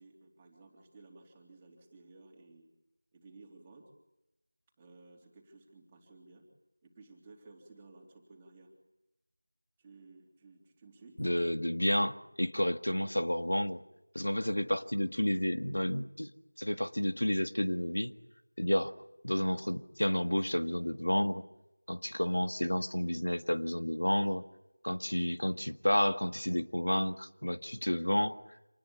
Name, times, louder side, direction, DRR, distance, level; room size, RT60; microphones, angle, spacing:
voice 1, 0.0-2.7 3.1-3.9 4.8-6.5 6.8-8.7 9.8-11.2 18.8-18.9, right 3 dB, 10° right, 0 dB, 3.5 m, -56 dB
voice 2, 11.2-13.8 14.2-16.3 16.6-18.1 18.6-18.9 19.2-21.4 21.9-24.4 24.8-28.3, left 1 dB, 85° left, 9 dB, 1.8 m, -30 dB
27.5 x 20.5 x 8.7 m, 0.93 s
figure-of-eight pair, 175°, 0 cm